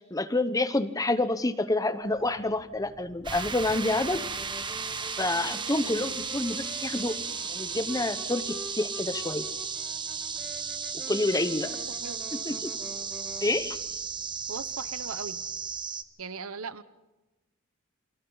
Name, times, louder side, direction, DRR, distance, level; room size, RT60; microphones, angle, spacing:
voice 1, 0.0-4.2 5.2-7.2 7.5-9.4 11.1-11.7 12.3-12.7 13.4-13.8, left 2 dB, 15° left, 11 dB, 0.9 m, -28 dB
sound 1, 2.0-15.7, equal, 30° left, 7.8 m, -58 dB
sound 2, 3.2-16.0, right 5 dB, 20° right, 1.0 m, -35 dB
Wind instrument woodwind instrument, 4.0-13.5, equal, ahead, 4.7 m, -46 dB
voice 2, 5.8-6.2 12.0-12.2 12.5-12.6 14.5-15.4 16.2-16.8, right 5 dB, 75° right, 14 dB, 1.0 m, -39 dB
28.5 x 23.5 x 4.0 m, 1.1 s
head